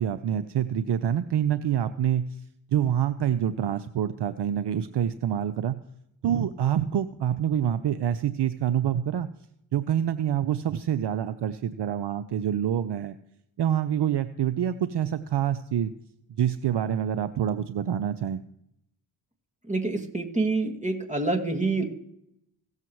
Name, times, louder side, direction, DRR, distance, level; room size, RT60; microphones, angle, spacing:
voice 1, 0.0-2.2 2.7-5.8 6.2-9.3 9.7-13.2 13.6-15.9 16.4-18.4, right 9 dB, 55° right, 13 dB, 0.7 m, -26 dB
voice 2, 19.7-21.8, right 3 dB, 15° right, 3 dB, 2.3 m, -27 dB
17.5 x 7.5 x 3.1 m, 0.78 s
supercardioid pair, 45°, 48 cm